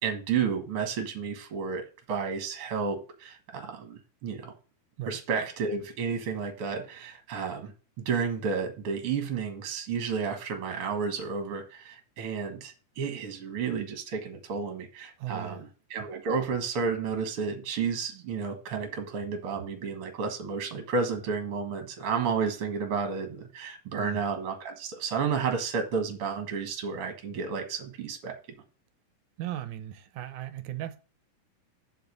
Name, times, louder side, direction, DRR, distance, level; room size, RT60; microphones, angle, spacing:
voice 1, 0.0-4.5 5.1-7.7 8.0-28.3, right 5 dB, 50° right, 1.9 m, -31 dB
voice 2, 15.2-15.6 24.0-24.2 29.4-31.0, right 12 dB, 70° right, 1.9 m, -37 dB
7.8 x 5.5 x 6.6 m
omnidirectional pair, 4.0 m